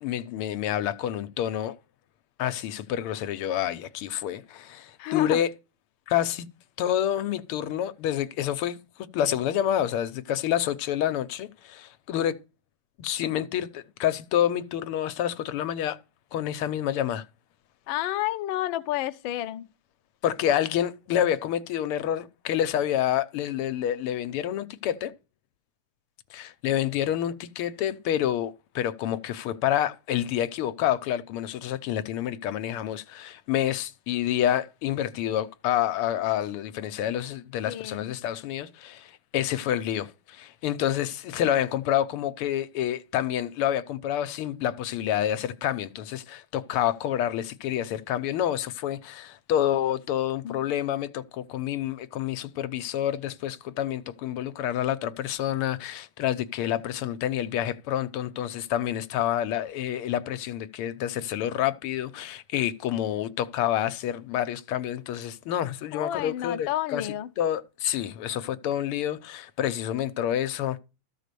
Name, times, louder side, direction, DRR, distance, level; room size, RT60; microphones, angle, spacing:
voice 1, 0.0-1.7 2.4-5.5 6.1-6.5 6.8-12.4 13.0-16.0 16.3-17.2 20.2-25.1 26.3-67.1 67.4-70.8, left 11 dB, 90° left, 1.7 m, -28 dB
voice 2, 5.0-5.4 17.9-19.7 37.7-38.1 50.4-50.6 65.9-67.3, left 14 dB, 70° left, 1.4 m, -30 dB
13.5 x 4.9 x 6.8 m
omnidirectional pair, 2.4 m